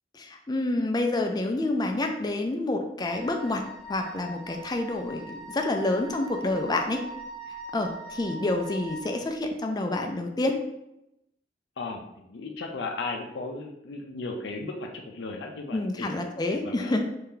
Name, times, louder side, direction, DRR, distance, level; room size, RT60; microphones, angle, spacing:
voice 1, 0.1-3.6 3.9-7.0 7.7-10.6 15.7-17.0, left 2 dB, 25° left, 4 dB, 0.4 m, -28 dB
Wind instrument woodwind instrument, 3.1-9.2, right 2 dB, 5° left, 0.7 m, -42 dB
voice 2, 11.8-16.3 16.5-16.9, left 3 dB, 75° left, 3 dB, 0.5 m, -36 dB
3.2 x 2.7 x 3.8 m, 0.85 s
head